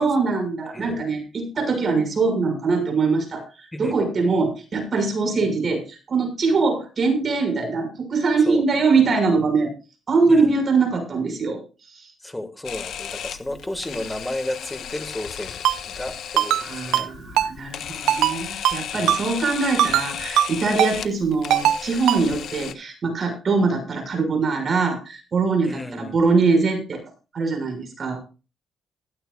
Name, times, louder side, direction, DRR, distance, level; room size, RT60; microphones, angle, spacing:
voice 1, 0.0-9.7 10.1-11.6 11.9-12.1 16.6-27.0 27.3-28.2, right 4 dB, 45° right, 5 dB, 6.4 m, -22 dB
voice 2, 12.2-17.1 18.9-19.2 25.6-26.2, left 1 dB, 10° left, 8 dB, 2.0 m, -33 dB
Camera, 12.6-22.7, left 9 dB, 70° left, 1.3 m, -35 dB
Ringtone, 15.6-15.8 16.4-16.6 16.9-17.1 17.4-17.5 18.1-18.3 18.6-18.8 19.1-19.2 19.8-20.1 20.4-20.5 20.8-20.9 21.5-21.8 22.1-22.2, right 11 dB, 85° right, 0.8 m, -19 dB
16.5 x 16.0 x 2.5 m, 0.33 s
cardioid pair, 90°, 0 cm